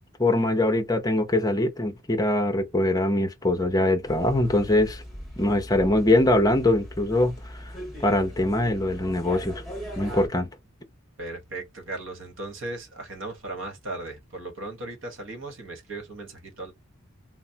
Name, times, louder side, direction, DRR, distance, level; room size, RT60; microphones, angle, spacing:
voice 1, 0.2-5.0 5.4-7.7 8.0-9.6 10.0-10.5, left 1 dB, 15° left, 0.6 m, -23 dB
sound 1, 4.0-10.3, equal, ahead, 1.2 m, -39 dB
voice 2, 11.2-16.7, right 2 dB, 60° right, 1.2 m, -37 dB
3.3 x 2.0 x 2.7 m
head